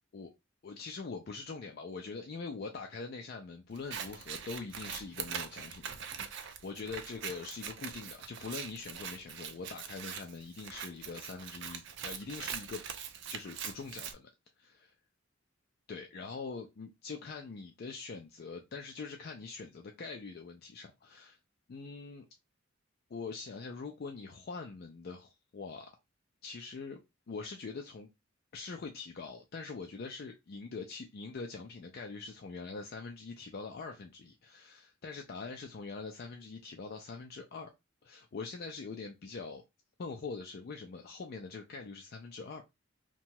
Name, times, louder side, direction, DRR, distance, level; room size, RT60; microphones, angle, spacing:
voice 1, 0.6-12.8 13.3-14.3 14.6-14.9 15.9-21.4 21.7-22.3 23.1-25.9 26.4-27.0 27.3-28.1 28.5-37.7 38.0-39.6 40.0-42.6, left 4 dB, 50° left, 0.4 m, -43 dB
Scissors, 3.7-14.1, right 8 dB, 60° right, 0.4 m, -43 dB
2.8 x 2.2 x 2.8 m
head